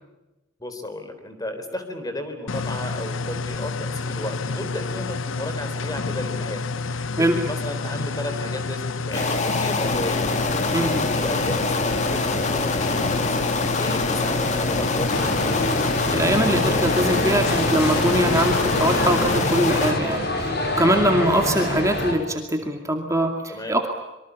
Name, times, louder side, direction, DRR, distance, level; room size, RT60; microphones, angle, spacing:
voice 1, 0.6-10.3 10.7-15.3 23.5-23.8, left 1 dB, 20° left, 7 dB, 4.0 m, -34 dB
sound 1, 2.5-20.0, left 3 dB, 85° left, 0.9 m, -29 dB
sound 2, 9.1-19.9, left 3 dB, 40° left, 2.6 m, -25 dB
voice 2, 10.7-11.1 16.1-23.9, right 1 dB, 15° right, 3 dB, 2.4 m, -22 dB
sound 3, 15.1-22.1, left 1 dB, 55° left, 6.2 m, -26 dB
26.0 x 24.0 x 8.4 m, 1.0 s
head